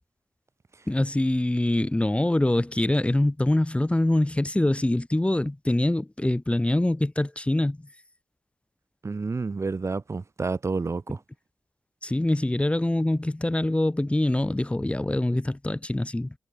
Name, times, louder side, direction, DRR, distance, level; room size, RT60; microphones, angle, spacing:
voice 1, 0.9-7.9 12.0-16.3, left 1 dB, 20° left, 1.6 m, -24 dB
voice 2, 9.0-11.2, right 4 dB, 45° right, 1.1 m, -29 dB
cardioid pair, 45°, 7 cm